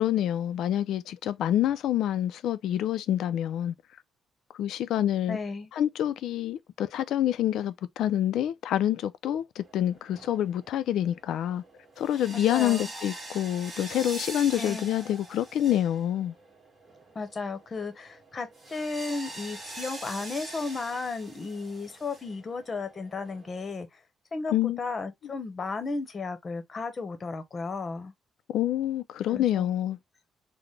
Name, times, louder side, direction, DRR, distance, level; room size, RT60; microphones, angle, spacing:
voice 1, 0.0-3.7 4.5-5.4 5.7-11.6 12.0-16.3 24.5-24.8 28.5-30.0, left 11 dB, 80° left, 0.4 m, -27 dB
voice 2, 5.3-5.7 12.3-12.9 14.6-14.9 17.1-24.0 24.3-28.1 29.3-29.7, left 4 dB, 35° left, 0.9 m, -34 dB
sound 1, 9.6-23.7, right 2 dB, 30° right, 1.4 m, -44 dB
4.0 x 2.1 x 3.1 m
cardioid pair, 90°, 0 cm